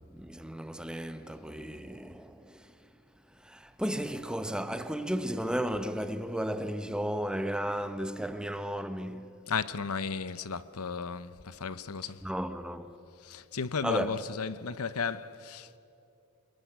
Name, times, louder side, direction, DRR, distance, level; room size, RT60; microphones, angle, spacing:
voice 1, 0.0-2.6 3.5-9.3 12.2-13.0 13.8-14.2, equal, 5° right, 1.0 m, -34 dB
voice 2, 9.5-12.2 13.2-15.8, left 5 dB, 75° left, 0.8 m, -34 dB
28.0 x 21.0 x 9.4 m
head